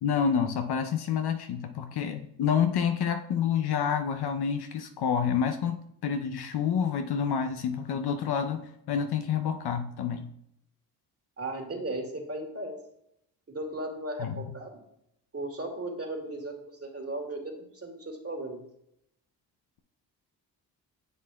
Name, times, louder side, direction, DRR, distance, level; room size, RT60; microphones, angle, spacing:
voice 1, 0.0-10.3 14.2-14.5, left 7 dB, 50° left, 6 dB, 0.8 m, -28 dB
voice 2, 11.4-12.8 13.5-14.8 15.3-18.6, right 1 dB, 30° right, 2 dB, 2.4 m, -36 dB
9.7 x 7.5 x 2.3 m, 0.76 s
hypercardioid pair, 45°, 49 cm